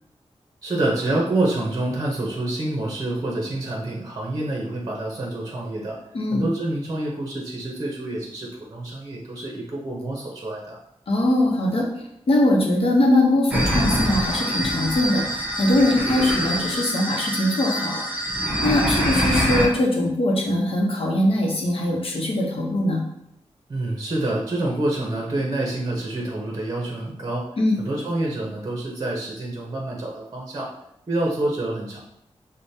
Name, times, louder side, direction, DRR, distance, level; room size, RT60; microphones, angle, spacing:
voice 1, 0.6-6.0 6.3-10.8 23.7-27.5 27.8-30.7 31.1-32.0, right 2 dB, 35° right, -2 dB, 0.7 m, -27 dB
voice 2, 11.1-11.9 12.3-18.0 18.6-23.0 27.6-27.8, left 1 dB, 60° left, -1 dB, 0.8 m, -21 dB
sound 1, 13.5-19.7, equal, 15° right, 1.0 m, -24 dB
4.8 x 2.1 x 2.7 m, 0.77 s
wide cardioid pair, 145°, 11 cm